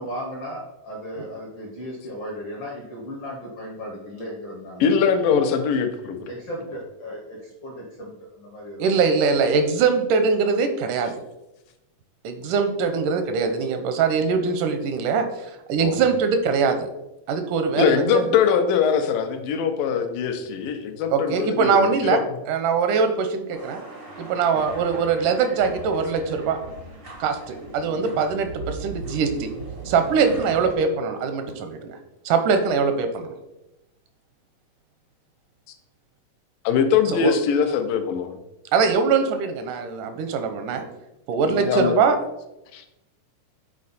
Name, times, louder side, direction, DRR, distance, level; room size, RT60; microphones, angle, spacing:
voice 1, 0.0-5.6 5.9-9.0, equal, 60° left, -3 dB, 1.1 m, -36 dB
voice 2, 4.8-6.2 15.8-16.0 17.8-22.2 36.6-38.3 41.4-42.0 42.7-42.8, left 7 dB, 90° left, 6 dB, 2.4 m, -22 dB
voice 3, 8.8-11.1 12.2-16.9 17.3-18.4 21.1-22.2 22.5-23.8 24.2-26.6 27.2-29.5 29.9-32.0 32.3-33.3 37.1-37.3 38.7-40.9 41.3-42.2, right 5 dB, 85° right, 8 dB, 2.1 m, -22 dB
sound 1, 23.5-30.7, right 3 dB, 60° right, 0.5 m, -38 dB
7.5 x 4.2 x 4.1 m, 0.92 s
omnidirectional pair, 3.8 m